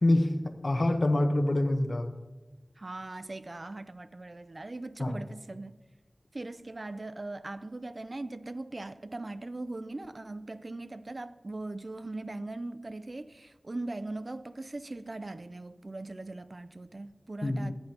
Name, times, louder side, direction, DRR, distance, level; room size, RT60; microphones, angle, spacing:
voice 1, 0.0-2.1 5.0-5.2 17.4-17.7, left 1 dB, 65° left, 0.9 m, -26 dB
voice 2, 2.8-5.8 6.3-17.7, right 2 dB, 60° right, 0.4 m, -40 dB
14.0 x 8.8 x 2.9 m
wide cardioid pair, 50°, 0 cm